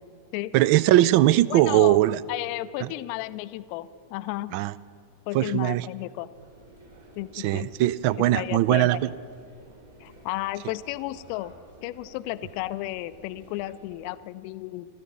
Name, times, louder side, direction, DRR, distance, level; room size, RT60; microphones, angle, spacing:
voice 1, 0.5-2.2 2.8-2.9 4.5-4.7 5.3-5.8 7.4-9.1, right 14 dB, 45° right, 18 dB, 0.4 m, -20 dB
voice 2, 1.5-2.0 2.3-4.6 5.3-6.3 7.2-7.7 8.2-9.0 10.0-11.5 11.8-14.9, left 16 dB, 45° left, 15 dB, 0.5 m, -33 dB
sound 1, 6.3-14.0, right 2 dB, 70° right, 4.1 m, -52 dB
14.0 x 13.0 x 7.0 m, 2.5 s
figure-of-eight pair, 90°, 0 cm